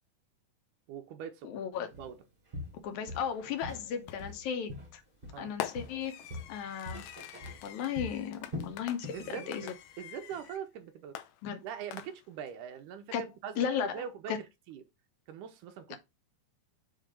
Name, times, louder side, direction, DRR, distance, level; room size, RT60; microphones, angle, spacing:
voice 1, 0.9-1.5 1.9-2.2 5.3-5.5 9.1-9.7 10.0-11.2 11.6-14.3 14.7-14.8 15.3-16.0, right 8 dB, 75° right, 2.3 m, -42 dB
voice 2, 1.4-1.9 2.8-5.0 5.4-6.1 6.5-7.1 7.6-9.7 11.4-11.6 13.1-13.2 13.6-14.0 14.3-14.4, left 8 dB, 75° left, 2.1 m, -35 dB
Walk footsteps, 1.9-2.2 2.5-3.9 4.2-5.5 5.8-9.3 9.6-9.8 10.3-10.4, left 2 dB, 55° right, 0.5 m, -43 dB
Fireworks, 4.1-4.5 5.6-10.6 11.2-12.5, left 9 dB, 90° left, 1.6 m, -46 dB
6.7 x 2.8 x 5.1 m
omnidirectional pair, 3.8 m